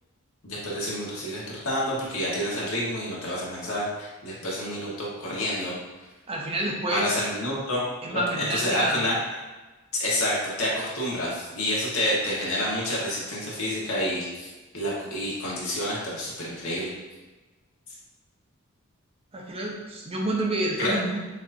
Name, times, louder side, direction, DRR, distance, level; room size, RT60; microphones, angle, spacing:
voice 1, 0.4-5.7 6.9-9.1 9.9-14.5 14.7-16.9 20.8-20.9, left 1 dB, 70° left, -5 dB, 1.3 m, -28 dB
voice 2, 6.3-7.2 8.0-9.0 19.3-21.3, right 1 dB, 25° right, -2 dB, 0.6 m, -28 dB
6.3 x 2.7 x 2.6 m, 1.2 s
head